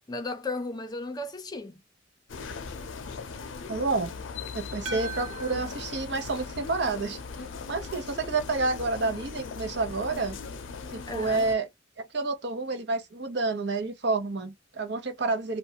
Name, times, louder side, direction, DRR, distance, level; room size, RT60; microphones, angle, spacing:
voice 1, 0.1-1.8 11.1-11.5, left 2 dB, 20° left, 0.5 m, -35 dB
sound 1, 2.3-11.6, left 4 dB, 85° left, 0.5 m, -39 dB
voice 2, 3.7-4.1 4.5-7.2 7.7-10.4 10.9-11.7 12.0-15.6, right 3 dB, 60° right, 0.7 m, -29 dB
sound 2, 4.8-7.1, right 4 dB, 90° right, 0.8 m, -42 dB
2.4 x 2.1 x 2.8 m
head